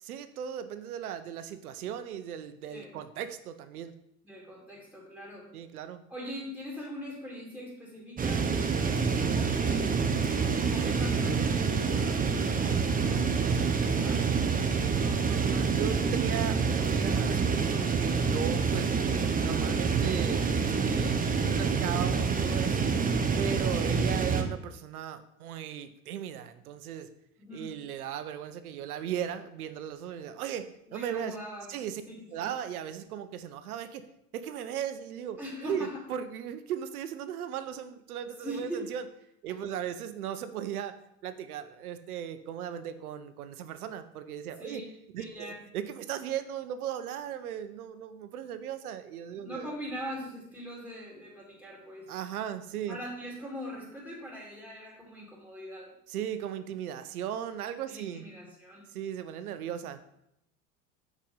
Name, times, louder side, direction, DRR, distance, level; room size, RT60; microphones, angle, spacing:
voice 1, 0.0-3.9 5.5-6.0 15.0-18.9 19.4-22.9 23.4-27.1 27.5-31.4 31.7-32.0 32.3-34.1 34.3-39.0 39.4-40.9 41.2-44.8 45.1-49.7 52.1-53.0 56.1-58.3 58.9-60.0, right 9 dB, 85° right, 11 dB, 0.8 m, -37 dB
voice 2, 4.2-5.5 6.1-8.4 8.9-10.0 10.7-14.3 27.4-27.7 30.9-31.7 32.1-32.5 35.4-35.9 38.4-38.8 44.6-44.8 45.2-45.6 49.4-52.1 52.9-55.9 57.9-58.8, equal, ahead, -4 dB, 2.8 m, -42 dB
sound 1, 8.2-24.4, right 5 dB, 20° right, 0.9 m, -27 dB
6.4 x 5.1 x 5.6 m, 0.79 s
hypercardioid pair, 85°, 43 cm